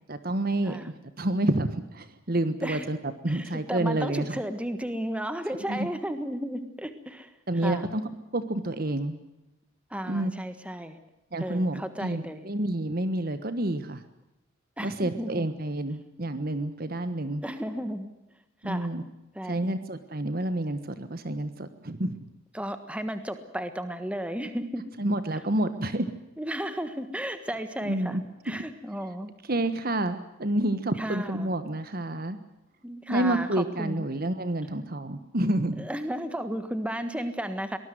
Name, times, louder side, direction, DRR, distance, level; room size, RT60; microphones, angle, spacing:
voice 1, 0.1-0.8 1.2-3.0 3.2-4.3 5.7-5.9 7.5-8.0 8.3-9.2 10.1-10.3 11.3-14.0 14.8-17.5 18.6-19.0 19.4-22.3 25.0-26.1 27.8-28.6 29.5-32.4 33.1-35.9, right 1 dB, 45° right, 11 dB, 1.3 m, -29 dB
voice 2, 3.3-7.3 7.6-7.9 9.9-11.0 11.4-12.5 14.8-15.5 17.4-18.1 18.6-18.9 19.3-19.7 22.5-24.8 26.4-28.2 28.4-29.3 30.6-30.7 31.0-31.5 32.8-34.1 35.8-37.8, equal, 5° right, 9 dB, 1.5 m, -34 dB
23.5 x 20.0 x 7.8 m, 0.93 s
head